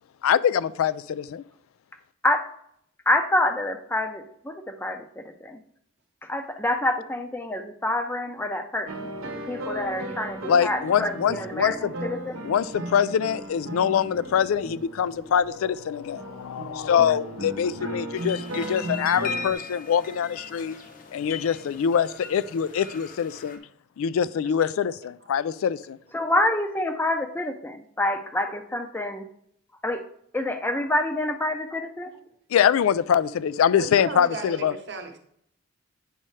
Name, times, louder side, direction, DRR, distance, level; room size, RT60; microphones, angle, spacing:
voice 1, 0.2-1.4 10.5-11.9 12.4-20.8 21.1-23.6 24.0-26.0 32.5-34.7, left 8 dB, 80° left, 0.3 m, -24 dB
voice 2, 3.1-5.6 6.2-12.4 26.1-29.3 29.8-30.0 30.3-32.1, left 1 dB, 10° left, 0.5 m, -27 dB
sound 1, 8.9-19.5, right 1 dB, 85° right, 0.8 m, -36 dB
sound 2, 18.1-23.6, left 5 dB, 40° left, 0.8 m, -38 dB
voice 3, 33.8-35.2, right 3 dB, 55° right, 1.0 m, -36 dB
8.7 x 5.5 x 3.2 m
head